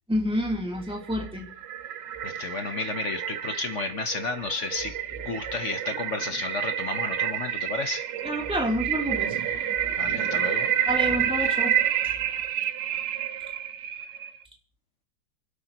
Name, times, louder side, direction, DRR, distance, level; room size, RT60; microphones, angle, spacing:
voice 1, 0.1-1.5 8.2-9.4 10.9-11.7, equal, ahead, 3.1 m, -28 dB
sound 1, 1.0-14.4, right 10 dB, 65° right, 1.5 m, -29 dB
voice 2, 2.2-4.9 5.2-8.0 10.0-10.7, left 3 dB, 45° left, 1.2 m, -32 dB
29.0 x 12.5 x 3.0 m
omnidirectional pair, 2.3 m